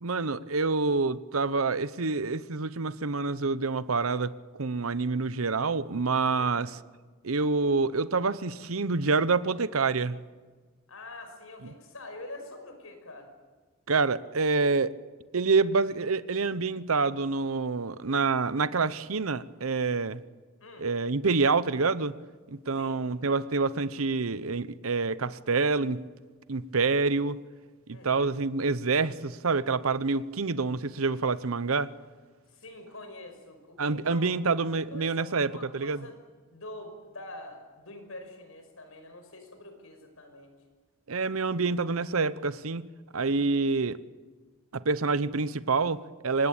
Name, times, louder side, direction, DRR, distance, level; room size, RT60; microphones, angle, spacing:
voice 1, 0.0-4.3 4.6-6.8 7.2-10.2 13.9-14.9 15.3-20.2 20.8-22.1 22.5-26.0 26.5-27.4 27.9-31.9 33.8-36.1 41.1-42.8 43.1-44.0 44.7-46.5, right 4 dB, 90° right, 15 dB, 0.9 m, -27 dB
voice 2, 6.3-6.6 10.9-13.3 20.6-20.9 22.8-23.0 27.9-28.4 32.5-34.3 34.7-36.2 36.5-40.5 43.2-43.6, left 2 dB, 90° left, 6 dB, 5.7 m, -45 dB
25.0 x 19.5 x 8.9 m, 1.4 s
head